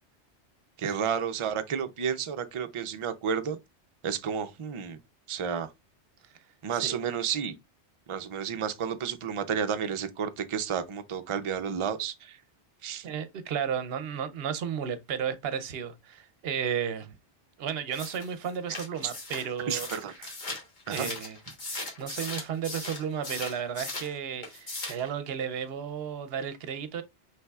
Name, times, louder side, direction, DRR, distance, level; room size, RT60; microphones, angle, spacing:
voice 1, 0.8-3.6 4.0-5.0 5.3-5.7 6.6-7.5 8.1-12.4 12.8-13.1 19.7-20.3 20.9-21.1, right 7 dB, 45° right, 0.4 m, -31 dB
voice 2, 13.0-17.1 17.6-19.9 20.9-21.4 21.6-27.0, right 8 dB, 65° right, 0.8 m, -33 dB
sound 1, 17.9-24.1 24.4-25.1, left 2 dB, 45° left, 1.4 m, -38 dB
5.5 x 3.3 x 2.3 m
omnidirectional pair, 1.2 m